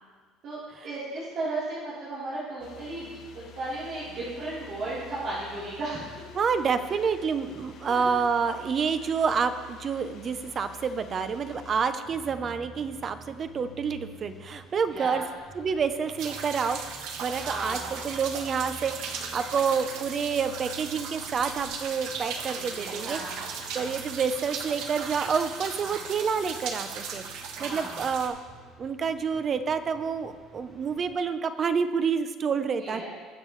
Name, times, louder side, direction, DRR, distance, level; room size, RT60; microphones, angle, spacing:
voice 1, 0.8-6.2 6.9-7.0 7.8-8.1 14.8-15.3 17.4-18.0 22.8-24.0 25.8-26.0 27.6-28.1 32.8-33.1, right 2 dB, 45° right, -11 dB, 3.6 m, -35 dB
sound 1, 2.6-11.9, left 6 dB, 55° left, 1.4 m, -49 dB
voice 2, 6.3-15.2 15.5-16.8 17.2-23.2 23.7-28.4 28.8-33.1, right 6 dB, 30° right, 10 dB, 0.6 m, -28 dB
sound 2, 12.0-31.1, right 1 dB, 5° right, 2.8 m, -49 dB
sound 3, 16.2-28.3, right 6 dB, 65° right, 1.2 m, -37 dB
21.0 x 7.3 x 3.2 m, 1.5 s
cardioid pair, 165°, 0 cm